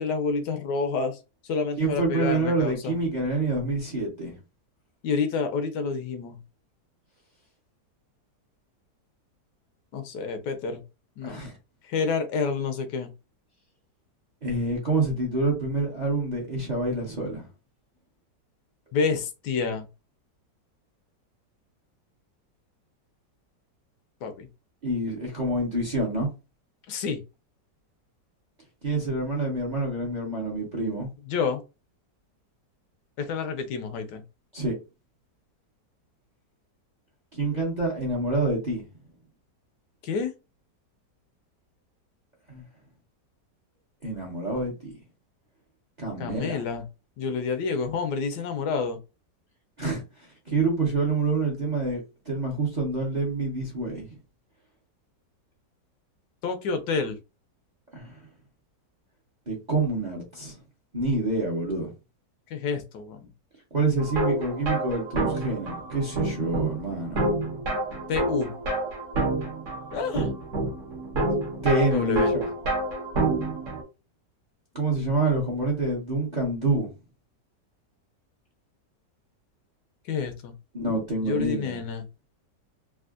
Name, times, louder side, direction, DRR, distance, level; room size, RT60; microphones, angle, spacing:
voice 1, 0.0-3.0 5.0-6.4 9.9-10.8 11.2-11.4 11.8-13.1 18.9-19.9 24.2-24.5 26.9-27.2 31.3-31.6 33.2-34.2 40.0-40.3 46.2-46.8 47.2-49.0 56.4-57.2 62.5-63.3 68.1-68.5 69.9-70.3 71.9-72.3 80.1-80.5 81.2-82.0, left 5 dB, 75° left, 1.2 m, -29 dB
voice 2, 1.8-4.3 11.2-11.5 14.4-17.5 24.8-26.3 28.8-31.1 34.5-34.7 37.3-38.9 42.5-42.6 44.0-44.9 46.0-46.6 49.8-52.0 52.3-54.2 57.9-58.2 59.5-60.6 60.9-61.9 63.7-67.2 71.6-72.5 74.7-76.9 80.7-81.8, right 2 dB, 35° right, 0.7 m, -27 dB
sound 1, 64.0-73.8, right 2 dB, 55° right, 1.1 m, -28 dB
3.4 x 2.4 x 2.4 m
omnidirectional pair, 1.9 m